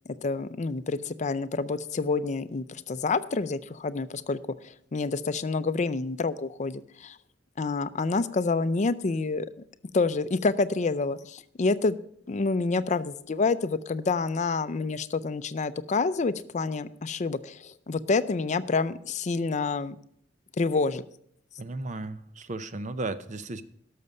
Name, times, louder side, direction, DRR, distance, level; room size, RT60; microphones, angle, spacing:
voice 1, 0.2-7.2 7.6-9.5 9.9-12.0 12.3-20.0 20.6-21.0, left 3 dB, 40° left, 14 dB, 0.5 m, -28 dB
voice 2, 21.6-23.6, right 2 dB, 40° right, 12 dB, 0.6 m, -35 dB
12.0 x 6.6 x 5.4 m, 0.68 s
head